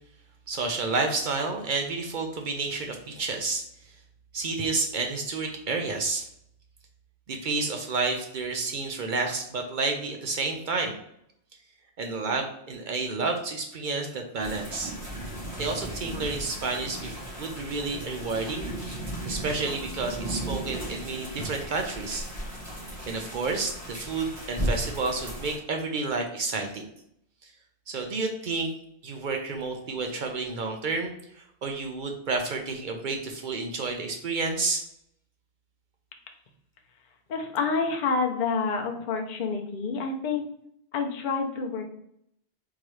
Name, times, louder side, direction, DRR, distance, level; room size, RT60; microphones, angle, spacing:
voice 1, 0.5-3.6 4.3-6.2 7.3-11.0 12.0-14.9 15.6-18.7 19.2-22.3 23.1-26.8 27.9-28.7 29.0-34.8, right 3 dB, 55° right, 3 dB, 0.6 m, -30 dB
sound 1, 14.4-25.6, right 1 dB, 15° right, 1.3 m, -35 dB
voice 2, 37.3-40.4 40.9-41.8, left 4 dB, 50° left, 3 dB, 0.7 m, -28 dB
3.7 x 3.0 x 3.0 m, 0.72 s
omnidirectional pair, 1.1 m